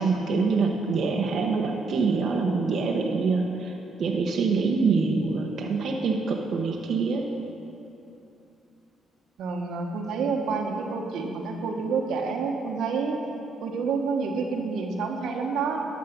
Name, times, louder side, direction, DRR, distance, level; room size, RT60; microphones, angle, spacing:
voice 1, 0.0-3.7 4.0-7.2, right 4 dB, 60° right, 0 dB, 0.9 m, -25 dB
voice 2, 9.4-13.2 13.6-15.8, right 4 dB, 80° right, 2 dB, 1.2 m, -28 dB
11.5 x 7.4 x 5.9 m, 2.8 s
cardioid pair, 90°, 0 cm